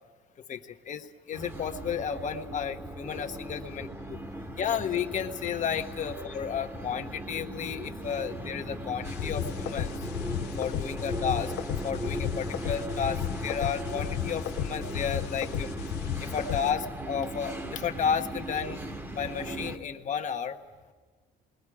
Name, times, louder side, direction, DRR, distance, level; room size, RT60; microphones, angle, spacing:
voice 1, 0.4-4.2 4.6-10.1 10.6-11.5 11.8-15.7 16.2-18.8 19.1-20.6, left 7 dB, 50° left, 7 dB, 1.2 m, -32 dB
sound 1, 1.3-19.8, right 1 dB, 15° right, 1.3 m, -38 dB
sound 2, 9.0-16.7, left 11 dB, 85° left, 0.7 m, -34 dB
27.5 x 21.0 x 4.9 m, 1.4 s
cardioid pair, 110°, 17 cm